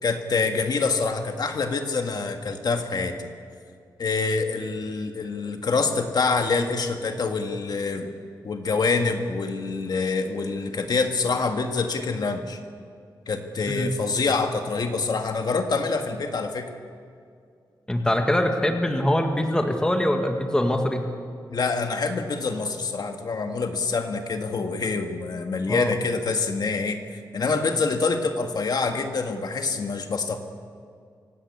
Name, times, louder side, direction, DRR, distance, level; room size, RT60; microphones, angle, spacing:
voice 1, 0.0-3.3 4.0-8.1 8.4-12.6 13.3-16.7 21.5-30.4, left 4 dB, 60° left, 5 dB, 1.7 m, -26 dB
voice 2, 17.9-21.1 25.7-25.9, left 1 dB, 10° left, 4 dB, 1.8 m, -23 dB
25.0 x 17.5 x 8.5 m, 2.3 s
wide cardioid pair, 165°, 8 cm